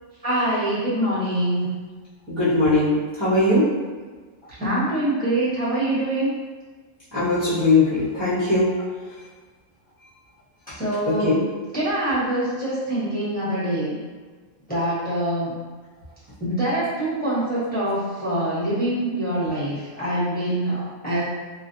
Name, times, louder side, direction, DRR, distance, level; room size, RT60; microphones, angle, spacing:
voice 1, 0.2-1.7 4.6-6.3 10.7-11.5 11.7-14.0 14.7-15.5 16.4-21.2, right 1 dB, 10° left, -11 dB, 0.9 m, -24 dB
voice 2, 2.3-3.7 7.1-8.7 11.2-11.3, left 2 dB, 25° right, -13 dB, 0.6 m, -20 dB
2.5 x 2.1 x 2.6 m, 1.4 s
omnidirectional pair, 1.3 m